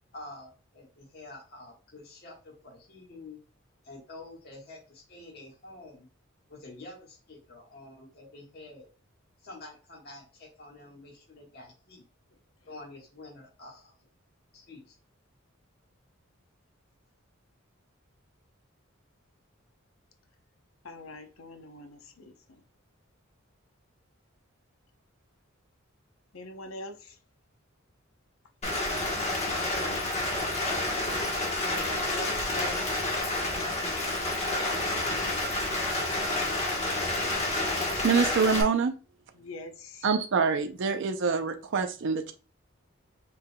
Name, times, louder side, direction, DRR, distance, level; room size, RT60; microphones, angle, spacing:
voice 1, 0.1-3.4 3.8-6.1 6.5-8.9 9.4-12.0 12.7-14.0 14.5-14.9, left 2 dB, 50° left, 1.5 m, -48 dB
voice 2, 20.8-22.6 26.3-27.2 31.7-33.0 34.1-35.5 39.3-40.1, left 1 dB, 75° left, 0.8 m, -43 dB
Rain, 28.6-38.6, left 2 dB, 35° left, 1.2 m, -29 dB
voice 3, 38.0-38.9 40.0-42.3, right 5 dB, 65° right, 0.5 m, -25 dB
5.6 x 3.4 x 2.2 m
head